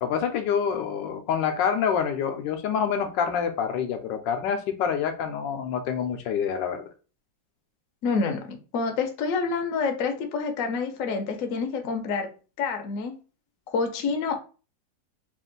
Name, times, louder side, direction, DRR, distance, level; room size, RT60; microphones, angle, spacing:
voice 1, 0.0-6.8, left 7 dB, 85° left, 6 dB, 1.3 m, -27 dB
voice 2, 8.0-12.3 12.6-13.1 13.7-14.4, left 4 dB, 60° left, 5 dB, 0.9 m, -27 dB
3.5 x 2.5 x 3.8 m, 0.35 s
omnidirectional pair, 2.0 m